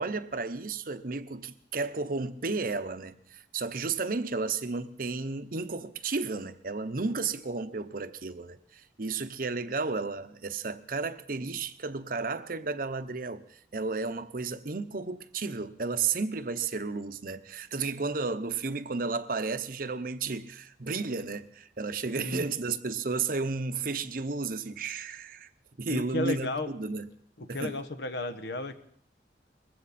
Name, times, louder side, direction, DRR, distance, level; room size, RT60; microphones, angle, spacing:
voice 1, 0.0-25.5 25.8-27.1 27.5-27.8, right 4 dB, 50° right, 0.8 m, -33 dB
voice 2, 25.8-26.7 27.4-28.8, left 2 dB, 80° left, 1.2 m, -33 dB
21.0 x 15.5 x 4.2 m
head